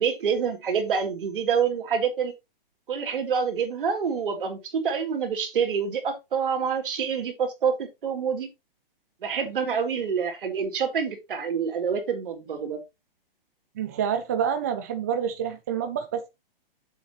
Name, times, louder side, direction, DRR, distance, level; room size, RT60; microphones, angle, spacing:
voice 1, 0.0-2.3 2.9-8.5 9.2-12.8, right 6 dB, 65° right, 3.4 m, -27 dB
voice 2, 13.8-16.3, right 8 dB, 15° right, 0.5 m, -28 dB
9.4 x 7.3 x 3.2 m
hypercardioid pair, 170°, 29 cm